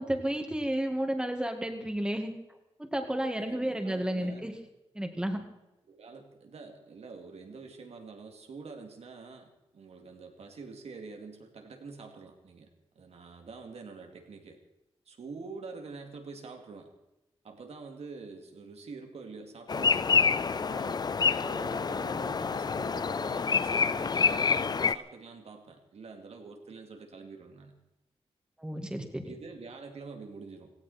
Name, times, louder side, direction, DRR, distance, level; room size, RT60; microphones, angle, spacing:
voice 1, 0.0-2.3 2.8-4.5 4.9-5.4 28.6-29.3, right 1 dB, 10° right, 5 dB, 2.1 m, -32 dB
voice 2, 3.4-4.5 5.9-12.7 12.9-14.6 15.1-16.9 17.4-21.0 21.4-27.7 29.2-30.7, right 4 dB, 90° right, 4 dB, 2.6 m, -46 dB
sound 1, 19.7-25.0, left 5 dB, 40° left, 0.5 m, -27 dB
17.5 x 17.0 x 4.4 m, 0.94 s
wide cardioid pair, 140°, 10 cm